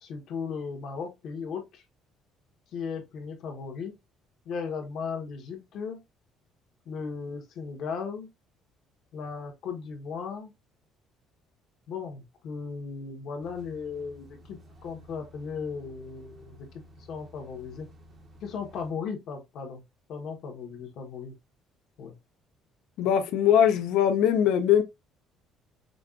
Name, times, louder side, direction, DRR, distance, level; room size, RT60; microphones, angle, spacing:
voice 1, 0.0-1.8 2.7-3.9 4.4-6.0 6.9-8.3 9.1-10.5 11.9-14.6 14.8-16.7 17.0-17.9 18.4-19.8 20.1-21.3 22.0-22.1, left 5 dB, 50° left, 0.9 m, -36 dB
sound 1, 13.4-18.9, equal, 30° right, 0.6 m, -53 dB
voice 2, 23.0-24.8, left 9 dB, 65° left, 0.5 m, -21 dB
5.1 x 2.3 x 2.4 m
cardioid pair, 180°, 0 cm